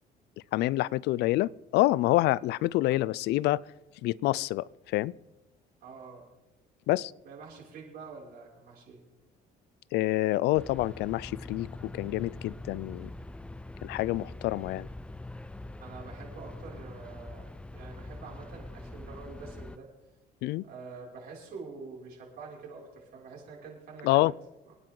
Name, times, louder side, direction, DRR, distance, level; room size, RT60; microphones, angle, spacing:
voice 1, 0.5-3.6 4.0-4.7 4.9-5.1 6.9-7.1 9.9-13.1 13.8-14.9 20.4-20.6 24.0-24.3, left 17 dB, 80° left, 0.4 m, -27 dB
voice 2, 5.8-6.3 7.2-9.0 15.8-19.9 20.6-24.3 24.7-24.8, right 4 dB, 65° right, 6.1 m, -46 dB
sound 1, 10.5-19.8, left 2 dB, 5° left, 0.4 m, -43 dB
25.5 x 9.5 x 3.9 m
cardioid pair, 110°, 17 cm